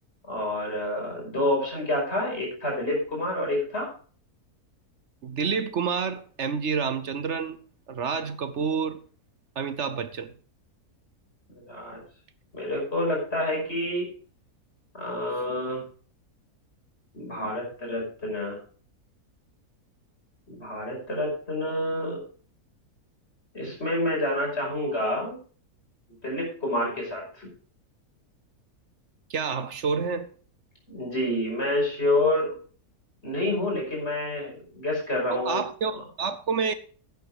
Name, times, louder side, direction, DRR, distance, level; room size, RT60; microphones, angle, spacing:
voice 1, 0.3-3.9 11.6-12.0 12.5-14.1 14.9-15.8 17.1-18.6 20.5-22.2 23.5-25.4 26.2-27.5 30.9-32.6 33.2-35.6, left 1 dB, 40° left, 5.8 m, -28 dB
voice 2, 5.2-7.6 7.9-9.0 9.6-10.3 29.3-30.3 35.3-36.7, right 5 dB, 55° right, 1.0 m, -28 dB
11.5 x 9.4 x 4.8 m
omnidirectional pair, 1.6 m